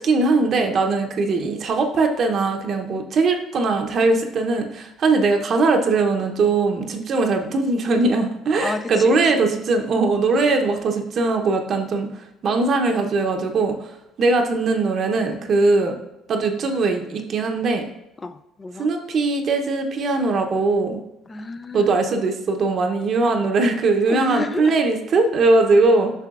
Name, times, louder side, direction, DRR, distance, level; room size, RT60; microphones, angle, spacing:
voice 1, 0.0-12.1 12.4-13.7 14.2-16.0 16.3-17.8 18.8-21.0 21.7-26.1, right 3 dB, 50° right, 3 dB, 0.7 m, -20 dB
voice 2, 8.6-9.5 18.2-18.9 21.3-22.0 24.1-24.8, left 4 dB, 30° left, 12 dB, 0.4 m, -31 dB
6.8 x 5.7 x 2.4 m, 0.91 s
supercardioid pair, 80°, 0 cm